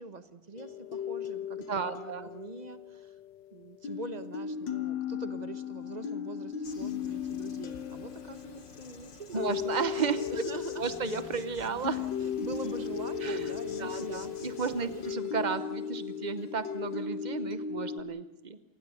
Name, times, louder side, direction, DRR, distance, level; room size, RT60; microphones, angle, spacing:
voice 1, 0.0-3.2 3.5-9.5 10.3-10.9 12.2-14.2 14.6-15.1, right 3 dB, 25° right, 11 dB, 1.0 m, -43 dB
sound 1, 0.6-3.4 3.8-18.0, left 8 dB, 70° left, 1.9 m, -37 dB
voice 2, 1.7-2.3 9.3-10.3 10.8-12.1 13.2-13.5 13.8-18.6, right 5 dB, 70° right, 12 dB, 0.4 m, -33 dB
Insect, 6.6-15.2, left 5 dB, 40° left, 0.8 m, -52 dB
sound 2, 7.4-17.3, left 3 dB, 90° left, 5.7 m, -57 dB
27.5 x 20.0 x 6.8 m, 1.0 s
omnidirectional pair, 2.1 m